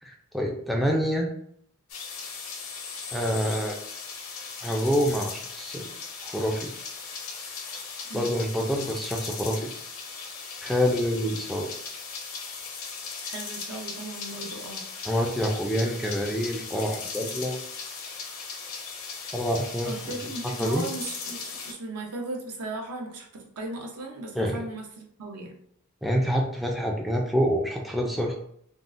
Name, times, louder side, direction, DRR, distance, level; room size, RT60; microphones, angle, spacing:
voice 1, 0.0-1.3 3.1-3.8 4.6-5.9 6.2-6.7 8.1-9.7 10.6-11.7 15.0-17.6 19.3-19.9 20.6-20.8 24.4-24.6 26.0-28.4, equal, ahead, 0 dB, 0.3 m, -27 dB
sound 1, 1.9-21.7, left 5 dB, 65° left, 0.6 m, -38 dB
voice 2, 13.2-14.8 19.8-25.5, right 2 dB, 80° right, 0 dB, 0.7 m, -37 dB
3.6 x 2.0 x 2.5 m, 0.69 s
head